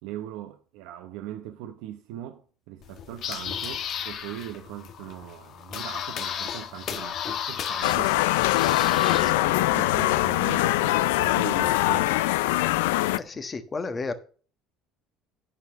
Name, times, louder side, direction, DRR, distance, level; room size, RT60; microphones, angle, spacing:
voice 1, 0.0-2.4 2.7-8.2 8.5-12.3, right 12 dB, 80° right, 0.8 m, -40 dB
sound 1, 2.8-9.3, left 8 dB, 55° left, 1.3 m, -34 dB
sound 2, 7.8-13.2, left 17 dB, 90° left, 0.3 m, -23 dB
voice 2, 13.1-14.1, left 3 dB, 25° left, 1.3 m, -32 dB
9.5 x 5.7 x 6.4 m
supercardioid pair, 95°, 0 cm